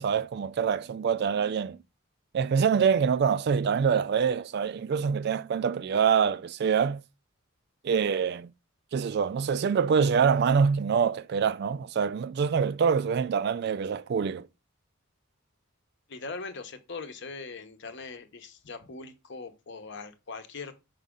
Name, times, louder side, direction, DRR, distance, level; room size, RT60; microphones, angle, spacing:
voice 1, 0.0-1.8 2.3-7.0 7.8-8.5 8.9-14.4, right 6 dB, 50° right, 0.3 m, -25 dB
voice 2, 16.1-20.7, left 4 dB, 55° left, 0.9 m, -41 dB
5.3 x 5.1 x 3.7 m
head